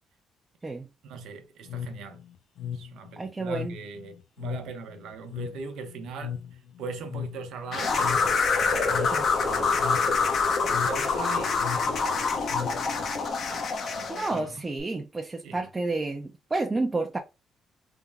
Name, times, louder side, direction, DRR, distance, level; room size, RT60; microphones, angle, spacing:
voice 1, 1.0-2.2 2.6-8.2 8.6-14.6 15.4-15.7, right 5 dB, 85° right, 0.8 m, -41 dB
sound 1, 1.6-13.3, left 8 dB, 85° left, 0.4 m, -38 dB
voice 2, 3.2-3.8 9.1-9.2 14.1-17.2, right 3 dB, 25° right, 0.5 m, -30 dB
sound 2, 7.7-14.4, left 4 dB, 55° left, 0.8 m, -26 dB
3.5 x 2.2 x 3.4 m
cardioid pair, 90°, 0 cm